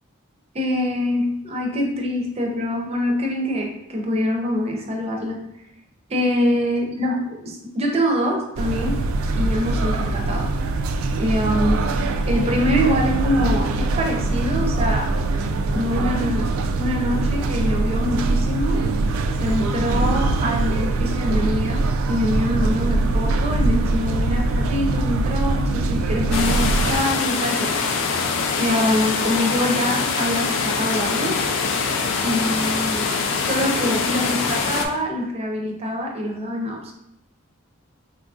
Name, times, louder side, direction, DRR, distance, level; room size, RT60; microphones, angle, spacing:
voice 1, 0.5-5.4 6.1-9.0 9.3-10.5 11.2-11.8 12.3-15.1 15.7-18.8 19.4-27.9 28.6-31.4 32.2-33.1 33.4-36.9, left 1 dB, 30° right, 1 dB, 0.5 m, -24 dB
sound 1, 8.6-27.0, right 2 dB, 90° right, 0.3 m, -22 dB
sound 2, 26.3-34.9, left 5 dB, 65° left, 0.4 m, -23 dB
3.8 x 2.5 x 2.3 m, 0.81 s
head